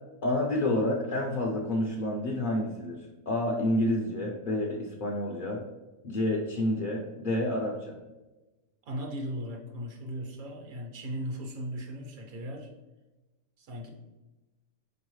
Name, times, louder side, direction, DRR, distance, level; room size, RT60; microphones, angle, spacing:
voice 1, 0.2-5.6 6.0-8.0, left 1 dB, 70° left, -1 dB, 0.4 m, -29 dB
voice 2, 8.8-12.7 13.6-13.9, equal, 75° right, 1 dB, 1.3 m, -37 dB
4.7 x 3.0 x 3.0 m, 1.1 s
omnidirectional pair, 1.5 m